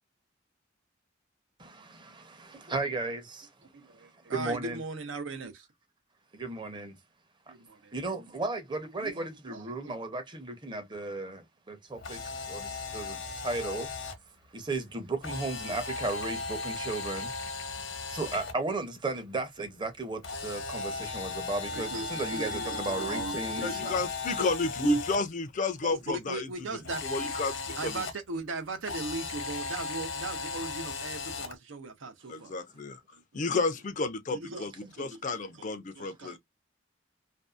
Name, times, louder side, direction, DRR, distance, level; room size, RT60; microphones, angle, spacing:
voice 1, 1.6-3.5 4.3-4.8 6.3-7.0 7.9-12.2 12.5-13.9 14.5-17.3 18.1-23.8 30.6-30.7, right 3 dB, 25° right, 0.7 m, -35 dB
voice 2, 4.3-5.7 7.5-7.9 9.0-9.9 21.7-24.0 24.4-24.5 24.8-25.0 25.8-27.3 27.7-32.5 33.1-33.2 34.3-36.4, right 3 dB, 85° right, 0.6 m, -38 dB
Camera, 11.9-14.1 15.2-18.5 20.2-25.2 26.8-28.1 28.8-31.5, left 4 dB, 85° left, 0.9 m, -36 dB
voice 3, 23.6-26.5 27.0-27.5 27.8-28.0 32.3-33.0 33.3-34.7 35.0-36.4, left 3 dB, 40° left, 0.4 m, -31 dB
2.6 x 2.3 x 2.3 m
head